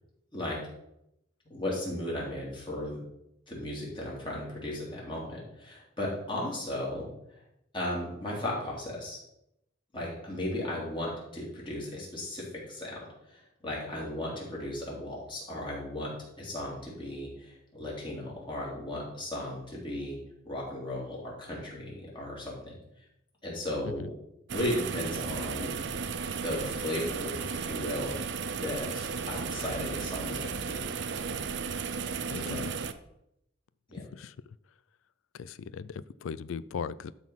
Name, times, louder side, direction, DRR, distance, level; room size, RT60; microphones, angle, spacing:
voice 1, 1.4-3.0 3.5-7.1 7.7-9.2 9.9-20.2 20.4-22.7 23.4-24.1 24.5-25.7 26.0-26.1 26.4-28.2 28.6-30.8 32.3-32.6 33.9-34.0, left 1 dB, 25° left, -4 dB, 3.0 m, -36 dB
sound 1, 24.5-32.9, right 5 dB, 60° right, 0.5 m, -34 dB
voice 2, 32.3-32.7 34.0-34.6 35.3-37.1, left 6 dB, 85° left, 18 dB, 0.4 m, -39 dB
12.0 x 4.1 x 5.7 m, 0.81 s
head